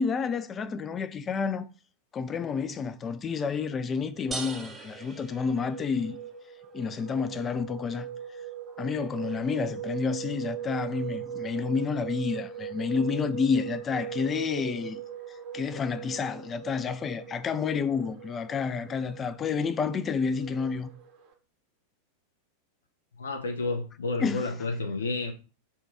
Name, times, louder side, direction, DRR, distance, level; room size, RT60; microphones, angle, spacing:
voice 1, 0.0-1.7 2.1-6.2 6.7-8.1 8.8-15.0 15.3-20.9 24.2-24.5, left 5 dB, 25° left, 0.4 m, -30 dB
sound 1, 3.6-21.3, right 9 dB, 45° right, 1.0 m, -40 dB
sound 2, 4.3-6.2, right 3 dB, 15° right, 0.7 m, -40 dB
voice 2, 23.2-25.3, left 3 dB, 70° left, 0.7 m, -30 dB
4.3 x 2.3 x 4.8 m
figure-of-eight pair, 90°, 0 cm